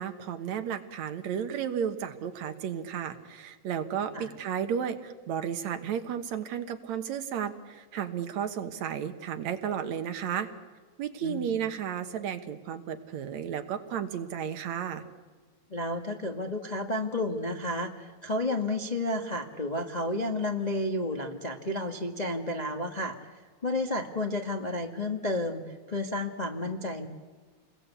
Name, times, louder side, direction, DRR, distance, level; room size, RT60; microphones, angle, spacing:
voice 1, 0.0-10.5 11.0-15.0, right 8 dB, 70° right, 8 dB, 2.6 m, -33 dB
voice 2, 11.2-11.5 15.7-23.1 23.6-27.1, left 1 dB, 30° left, 3 dB, 0.7 m, -31 dB
28.5 x 21.0 x 8.3 m, 1.5 s
omnidirectional pair, 3.4 m